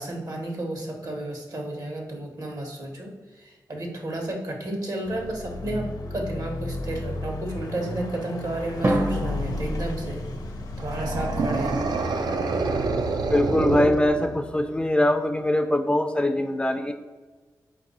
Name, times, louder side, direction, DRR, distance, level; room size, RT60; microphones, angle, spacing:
voice 1, 0.0-10.2 10.8-11.8, right 1 dB, 60° right, 1 dB, 1.1 m, -32 dB
Car passing by / Accelerating revving vroom, 5.1-12.4, left 2 dB, 75° left, 0.8 m, -33 dB
Drum, 8.8-10.9, right 1 dB, 35° right, 0.7 m, -28 dB
sound 1, 10.8-14.7, right 3 dB, 75° right, 0.4 m, -27 dB
voice 2, 13.3-16.9, left 1 dB, 15° left, 6 dB, 0.4 m, -22 dB
4.5 x 2.5 x 4.1 m, 1.3 s
cardioid pair, 60°, 7 cm